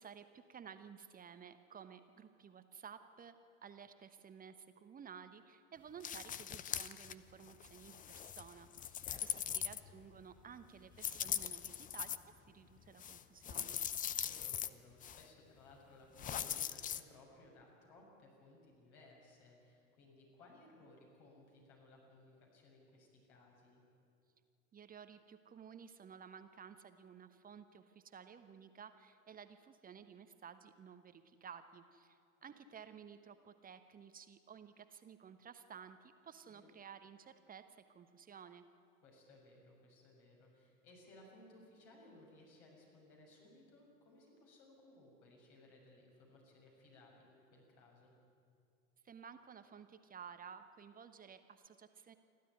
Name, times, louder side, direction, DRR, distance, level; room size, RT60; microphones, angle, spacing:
voice 1, 0.0-3.4 3.6-12.2 12.5-13.8 24.7-38.6 49.0-52.1, right 7 dB, 20° right, 9 dB, 1.1 m, -55 dB
sound 1, 6.0-7.1 7.5-10.2 11.0-12.2 13.0-14.7 15.0-15.2 16.2-17.0, left 9 dB, 20° left, 0.6 m, -41 dB
voice 2, 9.0-9.5 14.1-23.8 32.4-32.5 36.5-36.7 39.0-48.1, left 2 dB, 55° left, -1 dB, 7.1 m, -62 dB
28.5 x 12.5 x 9.6 m, 2.4 s
figure-of-eight pair, 85°, 42 cm